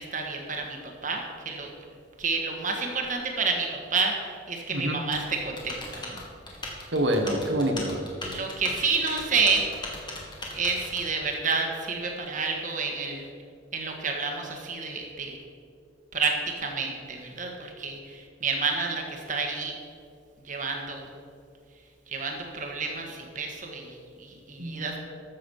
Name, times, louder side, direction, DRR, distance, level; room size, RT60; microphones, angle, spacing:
voice 1, 0.0-1.7 2.2-6.2 8.2-9.7 10.5-13.3 13.7-15.3 16.1-19.7 20.4-21.1 22.1-25.0, right 4 dB, 40° right, 2 dB, 1.8 m, -29 dB
Typing, 5.1-11.1, left 2 dB, 25° left, 2.1 m, -39 dB
voice 2, 6.9-8.0 24.6-25.0, right 1 dB, 70° right, 4 dB, 1.6 m, -26 dB
13.5 x 7.5 x 5.6 m, 2.4 s
head